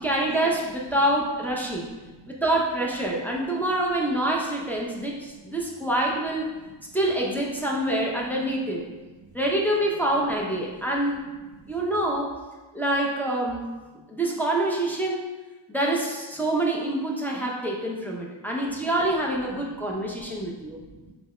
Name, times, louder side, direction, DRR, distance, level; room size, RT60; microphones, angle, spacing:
voice 1, 0.0-1.9 2.3-6.5 6.9-8.9 9.3-11.3 11.7-12.3 12.7-13.7 14.1-15.3 15.7-20.8, right 1 dB, 5° left, -3 dB, 0.6 m, -26 dB
voice 2, 1.9-2.3 5.0-5.4 6.8-6.9 8.9-9.3 11.6-11.7 19.6-21.1, right 3 dB, 85° right, 3 dB, 0.6 m, -51 dB
3.5 x 2.9 x 3.2 m, 1.2 s
wide cardioid pair, 40°, 49 cm